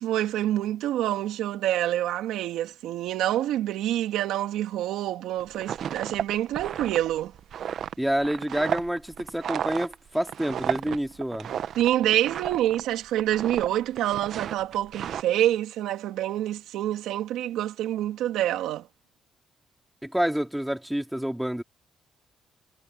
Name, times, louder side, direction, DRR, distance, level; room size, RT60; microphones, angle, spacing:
voice 1, 0.0-7.3 11.8-18.9, right 13 dB, 90° right, 2.5 m, -27 dB
sound 1, 5.4-12.9 13.1-13.7 14.0-15.2, right 9 dB, 65° right, 1.0 m, -33 dB
voice 2, 8.0-11.5 20.0-21.6, equal, 5° right, 2.5 m, -28 dB
cardioid pair, 90°, 0 cm